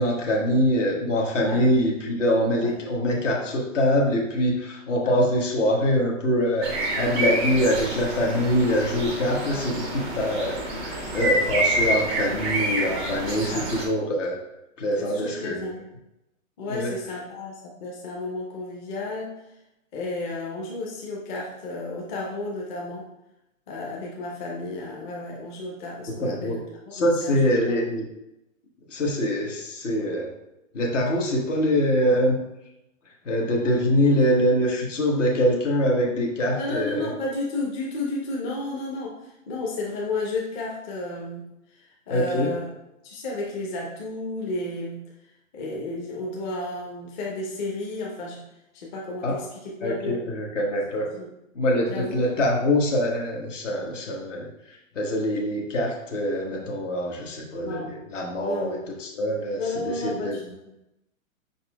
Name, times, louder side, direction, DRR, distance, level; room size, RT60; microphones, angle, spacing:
voice 1, 0.0-14.4 14.8-15.6 16.7-17.0 26.1-26.6 26.9-28.0 28.9-30.3 30.7-32.4 33.2-37.1 42.1-42.5 49.2-49.4 49.8-51.1 51.5-54.4 54.9-60.4, equal, 65° left, 0 dB, 1.3 m, -24 dB
sound 1, 6.6-13.8, right 1 dB, 10° right, 0.3 m, -27 dB
voice 2, 13.3-13.7 15.0-15.8 16.6-19.3 19.9-23.1 23.7-26.6 26.9-27.5 36.6-41.5 41.7-42.7 43.0-45.0 45.5-48.4 48.7-50.3 51.0-51.3 51.9-52.5 56.5-56.6 57.6-57.9 58.4-58.9 59.6-60.7, left 2 dB, 35° left, -3 dB, 0.9 m, -32 dB
5.2 x 4.2 x 2.3 m, 0.89 s
hypercardioid pair, 125°, 40 cm